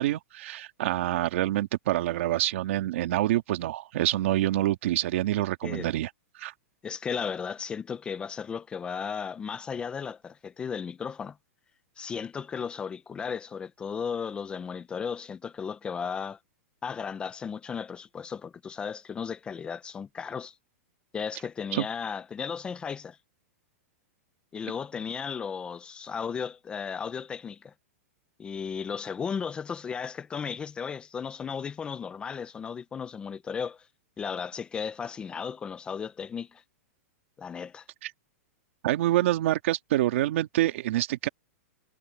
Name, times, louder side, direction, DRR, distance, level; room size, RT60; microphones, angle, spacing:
voice 1, 0.0-6.1 6.4-6.5 21.7-21.9 38.0-38.1 38.8-41.3, right 14 dB, 55° right, 2.1 m, -26 dB
voice 2, 6.8-11.4 12.0-16.4 16.8-20.6 21.1-23.2 24.5-27.7 28.4-33.9 34.2-36.6 37.4-37.8, left 6 dB, 10° left, 0.8 m, -35 dB
supercardioid pair, 160°, 8 cm